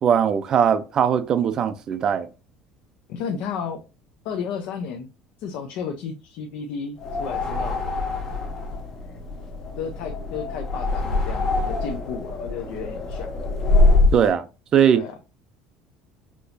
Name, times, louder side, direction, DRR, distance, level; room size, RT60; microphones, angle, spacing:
voice 1, 0.0-2.3 14.1-14.5 14.7-15.0, right 8 dB, 30° right, 0.4 m, -20 dB
voice 2, 3.1-3.8 4.2-5.1 5.4-7.8 9.8-13.3 14.3-14.4 14.9-15.2, left 6 dB, 55° left, 0.6 m, -33 dB
sound 1, 7.0-14.3, left 2 dB, 25° left, 0.8 m, -24 dB
6.0 x 2.9 x 2.6 m
cardioid pair, 170°, 2 cm